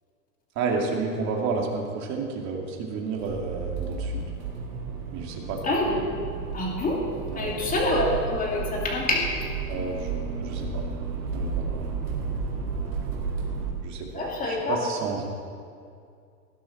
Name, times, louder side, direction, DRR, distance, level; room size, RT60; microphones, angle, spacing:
voice 1, 0.6-4.3 5.1-5.8 7.3-7.5 9.7-10.8 11.3-11.8 13.8-15.3, right 4 dB, 35° right, 0 dB, 2.6 m, -31 dB
Accelerating revving vroom, 3.2-13.7, right 4 dB, 70° right, 4.0 m, -32 dB
voice 2, 5.6-6.1 6.5-7.0 7.3-9.3 14.1-14.8, left 2 dB, 20° left, -2 dB, 2.8 m, -26 dB
20.0 x 11.0 x 4.3 m, 2.3 s
supercardioid pair, 140°, 47 cm